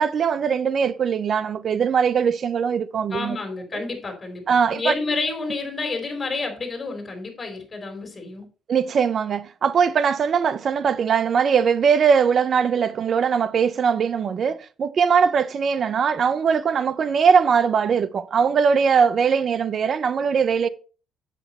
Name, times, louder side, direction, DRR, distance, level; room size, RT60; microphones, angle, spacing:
voice 1, 0.0-3.4 3.7-3.8 4.5-4.9 8.7-20.7, right 6 dB, 50° right, 0.7 m, -21 dB
voice 2, 3.1-8.5, left 3 dB, 25° left, 4.2 m, -29 dB
7.8 x 7.6 x 4.2 m
cardioid pair, 95°, 0 cm